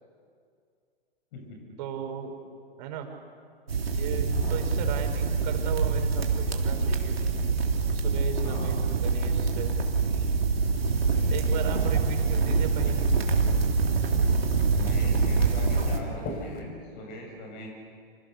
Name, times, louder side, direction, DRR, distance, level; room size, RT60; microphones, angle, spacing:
voice 1, 1.8-2.3 2.8-3.1 3.9-7.2 7.9-9.7 11.3-13.1, right 8 dB, 50° right, 4 dB, 5.6 m, -36 dB
sound 1, 3.7-16.0, right 4 dB, 85° right, 3.5 m, -25 dB
voice 2, 4.3-4.6 8.4-8.8 11.5-11.9 14.7-17.7, left 2 dB, 50° left, 1 dB, 7.5 m, -41 dB
sound 2, 10.5-16.6, left 3 dB, 30° left, 5.0 m, -42 dB
29.5 x 27.0 x 6.9 m, 2.2 s
hypercardioid pair, 115°, 30 cm